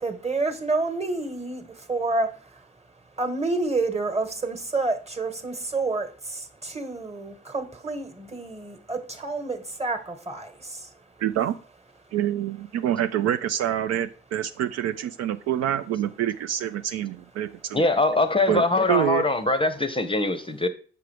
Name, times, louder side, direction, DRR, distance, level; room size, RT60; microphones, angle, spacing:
voice 1, 0.0-2.3 3.2-6.1 6.3-10.5, right 3 dB, 20° right, 1.3 m, -28 dB
voice 2, 11.2-11.6 12.1-17.8 18.5-19.2, right 11 dB, 60° right, 0.4 m, -26 dB
voice 3, 17.7-20.7, left 2 dB, 20° left, 0.7 m, -22 dB
6.8 x 4.8 x 3.4 m
hypercardioid pair, 45°, 29 cm